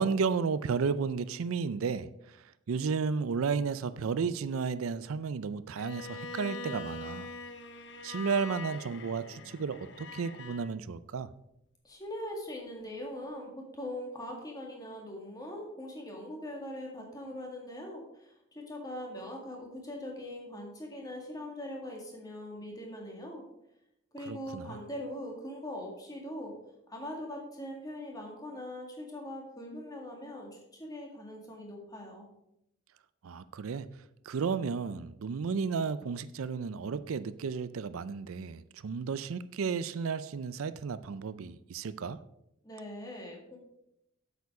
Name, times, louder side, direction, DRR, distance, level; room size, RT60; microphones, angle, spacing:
voice 1, 0.0-2.4 2.7-7.3 8.0-11.3 24.3-24.8 33.2-33.9 34.3-42.2, right 5 dB, 80° right, 0.4 m, -33 dB
Bowed string instrument, 5.8-10.7, left 3 dB, 55° left, 0.8 m, -43 dB
voice 2, 11.8-23.4 24.1-26.5 26.9-32.3 42.6-43.6, left 1 dB, 15° left, 1.9 m, -41 dB
8.1 x 7.1 x 4.8 m
head